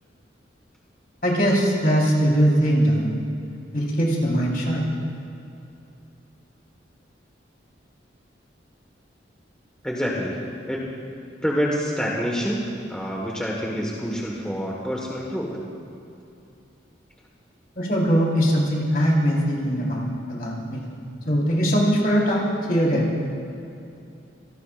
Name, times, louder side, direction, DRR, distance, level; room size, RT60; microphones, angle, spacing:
voice 1, 1.2-3.1 3.7-4.8 17.8-20.8 21.3-23.1, equal, 50° left, -4 dB, 4.3 m, -21 dB
voice 2, 9.8-10.4 10.7-10.9 11.4-12.6 12.9-15.6, equal, 5° left, -3 dB, 1.5 m, -27 dB
27.0 x 19.0 x 2.6 m, 2.7 s
head